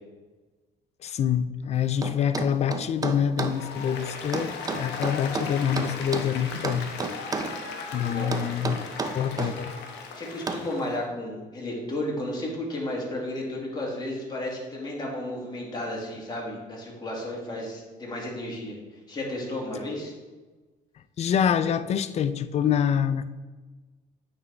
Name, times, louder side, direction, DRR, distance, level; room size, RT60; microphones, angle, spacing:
voice 1, 1.0-6.9 7.9-8.8 9.1-9.7 21.2-23.2, left 8 dB, 40° left, 0.4 m, -26 dB
sound 1, 2.0-3.6 4.3-6.3 6.6-7.6 8.3-9.6 10.5-10.7, right 4 dB, 20° right, 0.5 m, -31 dB
Applause, 3.5-11.0, left 5 dB, 85° left, 0.9 m, -37 dB
voice 2, 10.1-18.8 19.1-20.1, left 1 dB, 25° left, 1.9 m, -33 dB
8.7 x 3.9 x 3.3 m
cardioid pair, 110°, 17 cm